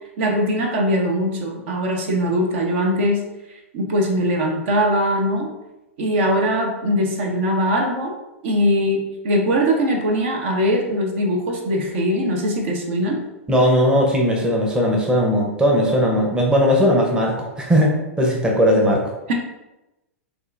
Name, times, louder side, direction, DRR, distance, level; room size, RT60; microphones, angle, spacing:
voice 1, 0.2-3.2 3.7-5.5 6.0-8.1 8.4-13.2 19.3-19.4, equal, 55° right, 1 dB, 0.9 m, -21 dB
voice 2, 13.5-19.0, equal, 10° right, -1 dB, 0.8 m, -18 dB
6.4 x 2.5 x 2.5 m, 0.99 s
hypercardioid pair, 110°, 7 cm